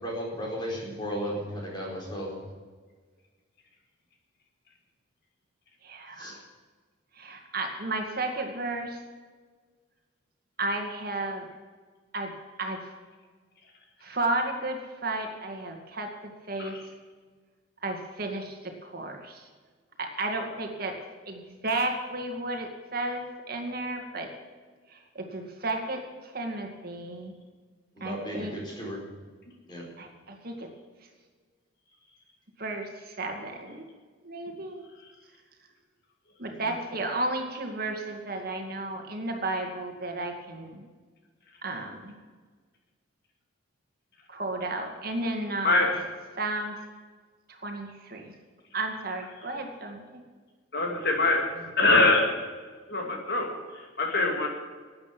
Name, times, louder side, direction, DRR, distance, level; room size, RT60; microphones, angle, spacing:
voice 1, 0.0-2.3 6.2-6.4 28.0-29.0 29.7-29.9 36.5-36.7, equal, 25° left, -2 dB, 4.5 m, -35 dB
voice 2, 5.8-6.4 7.1-9.0 10.6-11.5 12.1-12.3 12.6-13.0 14.0-16.1 16.5-16.8 17.8-19.5 20.0-20.9 21.3-24.3 24.9-27.3 28.0-28.6 30.0-30.7 32.6-33.8 34.2-34.8 36.4-40.9 41.6-42.1 44.3-45.9 46.4-46.8 47.5-48.3 48.7-50.2, right 2 dB, 50° right, 3 dB, 2.2 m, -33 dB
voice 3, 50.7-51.4 51.8-52.2 52.9-53.5 54.0-54.5, left 2 dB, 55° left, 2 dB, 2.5 m, -23 dB
12.0 x 9.0 x 9.1 m, 1.5 s
head